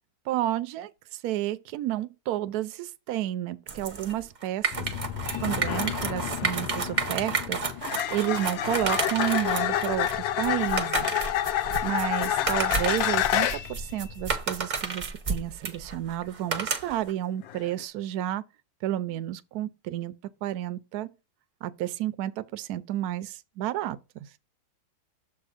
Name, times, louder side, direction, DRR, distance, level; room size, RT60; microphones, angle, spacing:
voice 1, 0.3-4.9 5.4-11.1 11.5-18.4 18.8-20.1 20.4-21.1 21.6-24.3, right 13 dB, 75° right, 0.8 m, -31 dB
sound 1, 3.7-17.1, right 4 dB, 45° right, 0.5 m, -32 dB
sound 2, 4.7-14.2, left 10 dB, 90° left, 1.4 m, -39 dB
sound 3, 5.3-5.5 7.8-13.8 17.5-17.7, left 12 dB, 75° left, 1.3 m, -27 dB
7.0 x 3.5 x 4.9 m
omnidirectional pair, 2.2 m